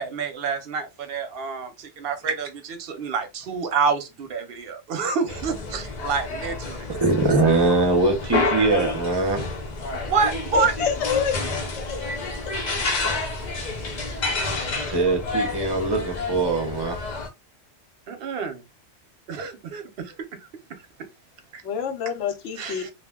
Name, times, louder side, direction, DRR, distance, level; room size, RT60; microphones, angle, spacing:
voice 1, 0.0-2.5 2.8-6.9 10.1-10.7 14.6-14.7 18.1-18.6 19.3-20.1 21.5-21.6 22.6-22.9, right 5 dB, 60° right, 0.8 m, -27 dB
sound 1, 5.3-17.3, left 3 dB, 45° left, 0.6 m, -29 dB
voice 2, 6.9-9.5 14.9-17.0, right 3 dB, 25° right, 0.6 m, -22 dB
voice 3, 10.5-12.0 21.6-22.9, left 7 dB, 75° left, 0.9 m, -27 dB
2.4 x 2.1 x 3.5 m
omnidirectional pair, 1.2 m